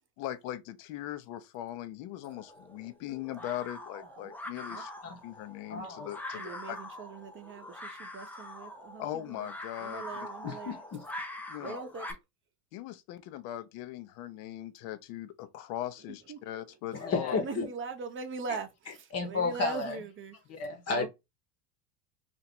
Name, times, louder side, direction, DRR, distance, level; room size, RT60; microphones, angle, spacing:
voice 1, 0.2-4.9 5.2-6.4 6.7-6.8 9.0-10.0 11.5-11.8 12.7-17.3, left 13 dB, 55° left, 0.8 m, -39 dB
sound 1, 2.2-12.1, left 1 dB, 5° left, 0.4 m, -44 dB
voice 2, 5.7-6.1 10.4-11.0 16.9-17.7 19.1-20.0 20.5-21.1, left 4 dB, 30° left, 1.1 m, -32 dB
voice 3, 6.3-9.5 9.8-10.8 11.6-12.2 16.1-16.8 17.3-20.4 20.9-21.1, right 5 dB, 25° right, 0.8 m, -41 dB
2.8 x 2.7 x 4.2 m
hypercardioid pair, 100°, 47 cm